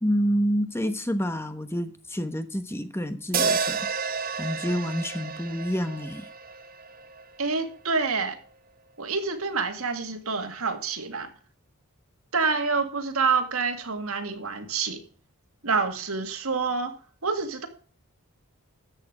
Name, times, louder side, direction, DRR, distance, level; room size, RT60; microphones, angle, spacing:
voice 1, 0.0-3.8 4.4-6.3, equal, 10° left, 1.0 m, -28 dB
sound 1, 3.3-7.6, right 5 dB, 40° right, 1.3 m, -30 dB
voice 2, 7.4-8.4 9.0-11.3 12.3-15.0 15.6-17.0 17.2-17.7, right 4 dB, 75° right, 2.1 m, -27 dB
13.5 x 8.5 x 4.9 m
head